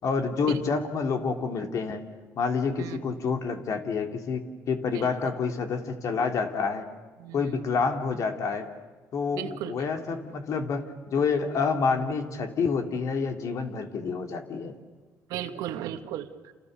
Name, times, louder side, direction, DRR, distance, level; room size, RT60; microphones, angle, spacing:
voice 1, 0.0-2.0 2.4-6.9 7.3-8.7 9.1-14.7, left 5 dB, 60° left, 5 dB, 3.3 m, -28 dB
voice 2, 7.2-7.6 9.3-9.8 15.3-16.5, right 11 dB, 85° right, 8 dB, 1.8 m, -36 dB
29.0 x 29.0 x 6.9 m, 1.3 s
cardioid pair, 90°, 6 cm